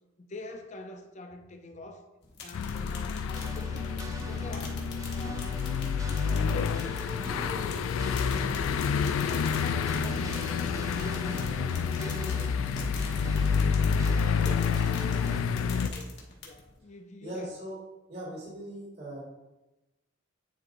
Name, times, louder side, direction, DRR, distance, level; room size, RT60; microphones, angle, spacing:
voice 1, 0.2-2.1 2.4-4.8 5.1-5.6 6.0-8.7 8.9-14.0 14.3-17.6, left 2 dB, 35° left, 6 dB, 0.6 m, -45 dB
sound 1, 2.2-16.8, left 4 dB, 55° left, 1.2 m, -47 dB
sound 2, 2.5-15.9, left 6 dB, 85° left, 0.3 m, -29 dB
sound 3, 3.3-15.4, right 2 dB, 15° right, 0.3 m, -43 dB
voice 2, 14.4-14.7 17.2-17.8 18.1-19.2, right 1 dB, 55° right, -8 dB, 2.3 m, -39 dB
9.3 x 4.3 x 2.6 m, 1.0 s
head